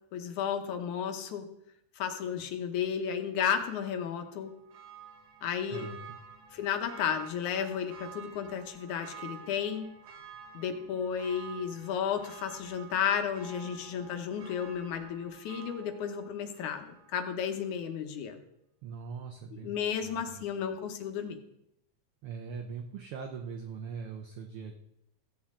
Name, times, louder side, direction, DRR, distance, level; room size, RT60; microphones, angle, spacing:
voice 1, 0.1-1.5 2.0-4.5 5.4-5.9 6.5-9.9 10.5-18.4 19.5-21.4, left 8 dB, 85° left, 6 dB, 2.5 m, -33 dB
Church bell, 3.6-17.3 17.6-17.7, right 7 dB, 85° right, 2.7 m, -50 dB
voice 2, 5.7-6.2 18.8-19.7 20.0-20.4 22.2-24.7, right 5 dB, 70° right, 3 dB, 1.3 m, -41 dB
15.5 x 8.6 x 3.7 m, 0.81 s
omnidirectional pair, 3.3 m